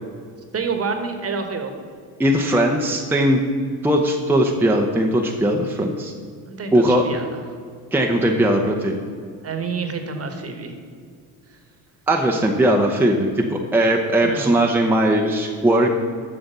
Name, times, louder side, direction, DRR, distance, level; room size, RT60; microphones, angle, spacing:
voice 1, 0.5-1.7 6.4-7.4 9.4-10.7 14.2-14.5, right 5 dB, 35° right, 6 dB, 1.3 m, -28 dB
voice 2, 2.2-3.4 3.8-6.1 6.7-7.0 7.9-8.9 12.1-15.9, right 1 dB, 5° right, 1 dB, 0.7 m, -19 dB
7.8 x 5.9 x 6.7 m, 2.1 s
cardioid pair, 100°, 40 cm